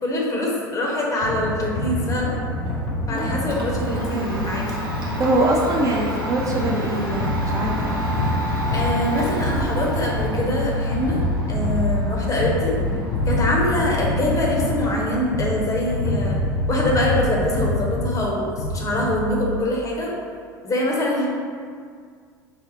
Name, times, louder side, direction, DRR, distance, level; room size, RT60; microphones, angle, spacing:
voice 1, 0.0-2.4 3.1-4.6 8.7-11.2 11.5-12.7 13.3-16.4 16.7-20.1 20.6-21.3, left 1 dB, 30° left, -2 dB, 0.7 m, -24 dB
sound 1, 1.2-19.6, left 2 dB, 65° left, 0.4 m, -27 dB
sound 2, 1.2-15.0, equal, 55° right, 1.0 m, -31 dB
Domestic sounds home sounds, 2.7-18.5, right 1 dB, 85° right, 0.6 m, -33 dB
voice 2, 3.1-3.5 3.8-4.3 5.2-8.0, right 1 dB, 30° right, -2 dB, 0.5 m, -24 dB
4.0 x 2.0 x 2.9 m, 2.1 s
figure-of-eight pair, 70°, 11 cm